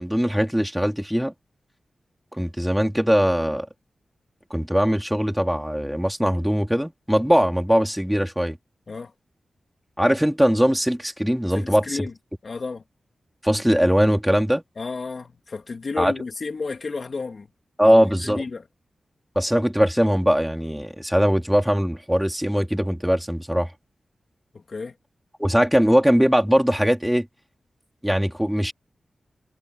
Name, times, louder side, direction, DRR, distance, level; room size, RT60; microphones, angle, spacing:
voice 1, 0.0-1.3 2.4-3.7 4.5-8.6 10.0-12.0 13.4-14.6 16.0-16.1 17.8-18.4 19.3-23.7 25.4-27.3 28.0-28.7, equal, 5° right, 3.4 m, -21 dB
voice 2, 11.5-12.1 12.4-12.8 14.8-17.5 17.8-18.6 24.5-24.9, left 4 dB, 50° left, 3.3 m, -32 dB
wide cardioid pair, 120°, 0 cm